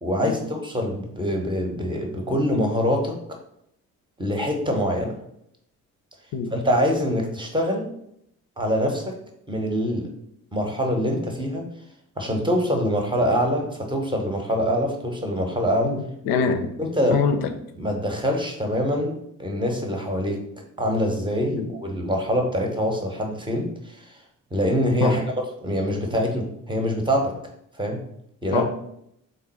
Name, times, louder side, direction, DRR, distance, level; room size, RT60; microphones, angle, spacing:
voice 1, 0.0-3.4 4.2-5.2 6.5-7.9 8.6-9.2 9.5-10.1 10.5-11.7 12.2-15.9 16.8-17.2 17.8-20.4 20.8-24.1 24.5-25.2 25.6-27.3 27.8-28.0 28.4-28.7, equal, 10° right, 2 dB, 0.9 m, -24 dB
voice 2, 15.8-16.7 17.1-17.5 21.5-21.7 25.0-25.2 28.5-28.7, left 6 dB, 55° left, 7 dB, 0.6 m, -24 dB
3.8 x 2.1 x 4.1 m, 0.75 s
figure-of-eight pair, 45°, 43 cm